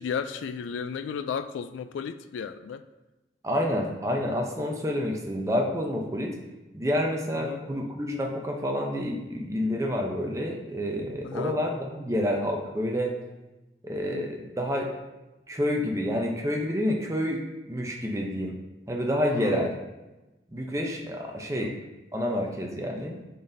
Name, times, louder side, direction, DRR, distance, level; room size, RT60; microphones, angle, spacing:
voice 1, 0.0-2.8 7.3-7.6 11.2-11.6 14.0-14.3 19.3-19.7 21.6-21.8 22.7-22.9, left 6 dB, 90° left, 10 dB, 0.3 m, -34 dB
voice 2, 3.4-6.4 6.7-13.1 13.8-14.9 15.5-18.5 18.9-19.7 20.5-21.8 22.1-23.2, equal, 15° right, 1 dB, 0.6 m, -28 dB
10.5 x 4.0 x 2.6 m, 1.1 s
head